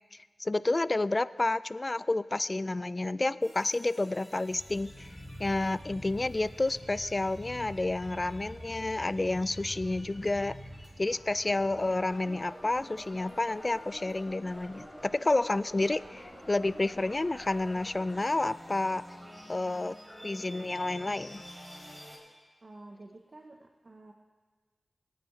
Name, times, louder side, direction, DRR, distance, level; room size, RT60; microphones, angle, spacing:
voice 1, 0.4-5.1 5.4-10.6 11.0-19.0 19.5-19.9 20.2-21.4, left 2 dB, 35° left, 16 dB, 0.3 m, -30 dB
sound 1, 3.4-22.2, equal, 5° right, 3.4 m, -47 dB
voice 2, 22.6-24.1, right 2 dB, 45° right, 2 dB, 1.0 m, -50 dB
22.5 x 9.2 x 3.2 m, 1.4 s
cardioid pair, 60°, 0 cm